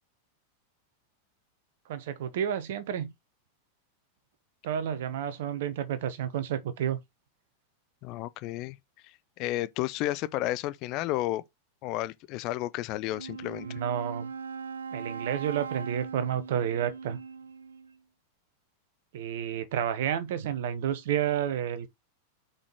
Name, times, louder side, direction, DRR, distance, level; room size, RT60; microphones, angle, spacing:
voice 1, 1.9-3.1 4.6-7.0 13.6-14.3 14.9-17.2 19.1-21.9, right 9 dB, 55° right, 1.0 m, -30 dB
voice 2, 8.0-8.8 9.4-11.4 11.8-13.8, left 15 dB, 40° left, 0.6 m, -32 dB
Wind instrument woodwind instrument, 13.0-18.0, right 6 dB, 70° right, 0.5 m, -40 dB
5.1 x 4.2 x 4.5 m
figure-of-eight pair, 90°, 0 cm